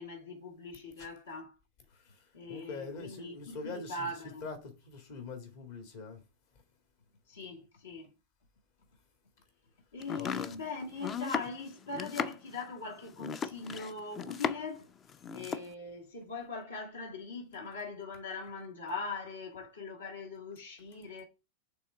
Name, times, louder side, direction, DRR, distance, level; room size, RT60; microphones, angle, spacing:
voice 1, 0.0-1.6 2.3-4.5 7.3-8.1 9.9-14.9 15.3-21.2, left 3 dB, 70° left, 1.8 m, -41 dB
voice 2, 2.5-4.1 4.4-6.2 10.2-10.5, left 4 dB, 50° left, 1.8 m, -43 dB
Domestic sounds home sounds, 10.0-14.8 15.1-15.7, left 6 dB, 25° left, 0.4 m, -37 dB
5.6 x 3.8 x 5.5 m
figure-of-eight pair, 90°, 0 cm